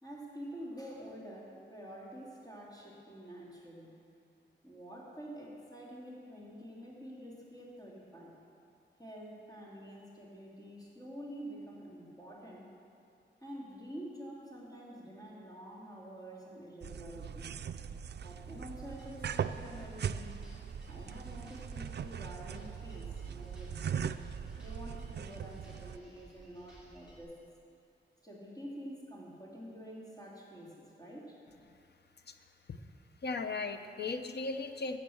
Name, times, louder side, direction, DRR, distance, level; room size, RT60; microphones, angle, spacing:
voice 1, 0.0-4.0 4.6-8.4 9.0-12.7 13.4-17.6 18.2-20.3 20.9-24.2 24.6-27.4 28.2-31.4, equal, 20° left, -5 dB, 2.8 m, -48 dB
sound 1, 16.8-26.0, right 7 dB, 60° right, 0.4 m, -40 dB
sound 2, 18.9-27.2, right 1 dB, 5° right, 2.9 m, -58 dB
voice 2, 33.2-35.0, left 3 dB, 60° left, 8 dB, 0.8 m, -37 dB
14.5 x 7.5 x 7.1 m, 2.5 s
wide cardioid pair, 120°, 19 cm